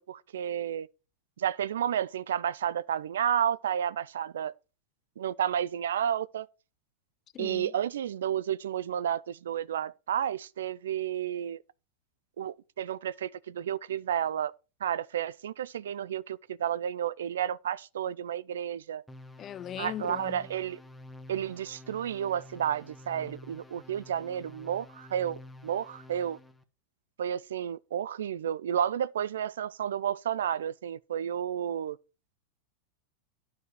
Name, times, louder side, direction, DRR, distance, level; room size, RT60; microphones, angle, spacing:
voice 1, 0.1-0.9 1.4-4.5 5.2-6.5 7.4-11.6 12.4-14.5 14.8-19.0 19.8-20.8 21.3-26.4 27.2-32.0, right 9 dB, 80° right, 0.4 m, -31 dB
voice 2, 7.3-7.7 19.4-20.4, left 11 dB, 35° left, 0.4 m, -39 dB
sound 1, 19.1-26.6, left 1 dB, 5° left, 1.1 m, -50 dB
9.5 x 5.0 x 6.0 m
hypercardioid pair, 105°, 0 cm